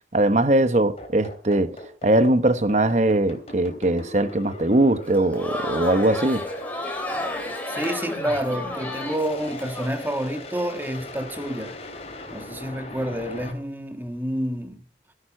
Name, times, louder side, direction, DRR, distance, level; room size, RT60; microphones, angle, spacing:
voice 1, 0.1-6.4, right 1 dB, 40° right, 0.9 m, -21 dB
sound 1, 1.0-13.5, left 1 dB, 35° left, 3.4 m, -39 dB
Crowd, 5.0-9.9, left 1 dB, 10° left, 3.2 m, -32 dB
voice 2, 7.7-11.7 12.3-14.8, equal, 10° right, 1.6 m, -29 dB
16.5 x 11.0 x 4.4 m
head